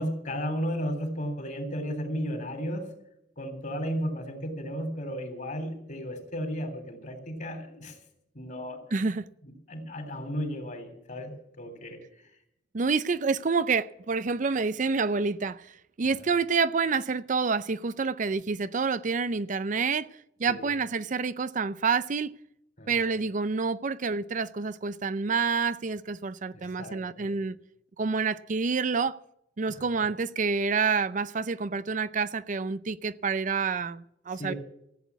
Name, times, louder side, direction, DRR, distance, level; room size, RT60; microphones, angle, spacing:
voice 1, 0.0-2.9 3.4-8.0 8.3-8.8 9.7-12.0 16.2-16.3 20.5-20.7 22.8-23.1 26.5-27.3 29.7-30.1 34.3-34.6, equal, 50° left, 3.5 m, -34 dB
voice 2, 8.9-9.2 12.7-20.1 20.4-22.3 22.9-27.6 28.0-29.2 29.6-34.5, right 5 dB, 45° right, 0.5 m, -28 dB
15.5 x 8.4 x 8.1 m
head